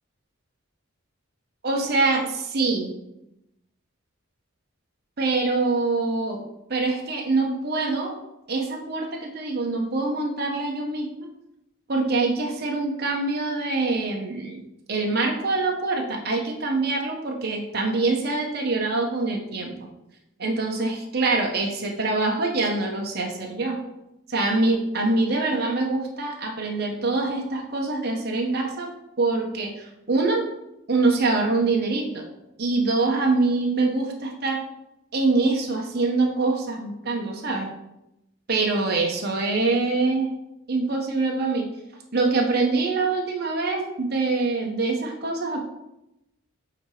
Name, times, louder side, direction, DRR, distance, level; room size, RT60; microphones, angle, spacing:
voice 1, 1.6-2.9 5.2-6.4 6.7-8.2 8.5-11.1 11.9-14.6 14.9-19.7 20.4-23.8 24.3-28.9 29.2-30.4 30.9-32.2 32.6-34.6 35.1-37.7 38.5-40.3 40.7-41.7 42.1-45.6, right 3 dB, 45° right, 0 dB, 1.0 m, -24 dB
7.9 x 2.9 x 4.8 m, 0.89 s
head